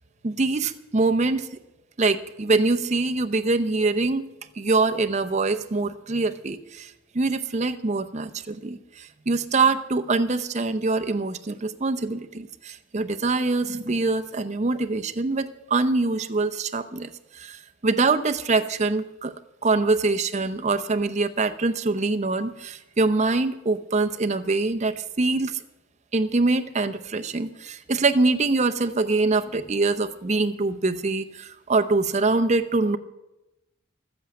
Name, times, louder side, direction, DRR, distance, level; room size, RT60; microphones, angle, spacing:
voice 1, 0.2-1.5 2.0-19.3 19.6-25.6 26.1-33.0, right 3 dB, 35° right, 7 dB, 0.6 m, -24 dB
12.5 x 8.0 x 8.6 m, 0.99 s
head